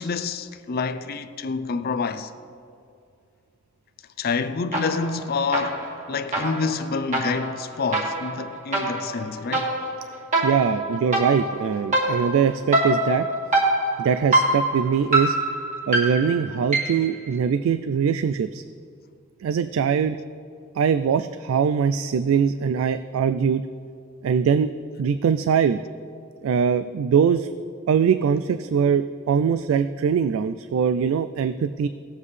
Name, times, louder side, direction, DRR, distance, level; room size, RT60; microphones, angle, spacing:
voice 1, 0.0-2.3 4.2-9.7, left 4 dB, 50° left, 0.5 m, -28 dB
sound 1, 4.7-5.2 5.5-17.1, right 1 dB, 40° right, 2.0 m, -25 dB
voice 2, 10.4-13.3 14.0-15.4 15.9-18.6 19.4-20.2 20.7-23.6 24.2-24.7 25.0-25.8 26.4-27.5 27.9-31.9, right 7 dB, 90° right, 0.3 m, -22 dB
17.5 x 7.3 x 3.3 m
head